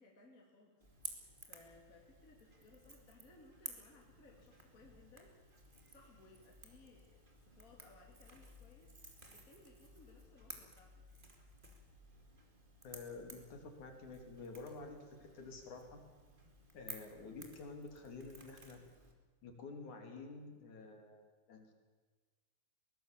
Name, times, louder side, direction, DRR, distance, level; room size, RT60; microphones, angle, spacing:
voice 1, 0.0-5.4 5.9-11.0, left 2 dB, 20° left, -1 dB, 2.4 m, -63 dB
Crackle / Crack, 0.8-19.1, right 2 dB, 30° right, 0.8 m, -55 dB
voice 2, 12.8-15.9 16.7-18.8 19.4-21.7, left 3 dB, 45° left, 4 dB, 3.4 m, -50 dB
23.0 x 19.0 x 7.3 m, 1.4 s
omnidirectional pair, 5.7 m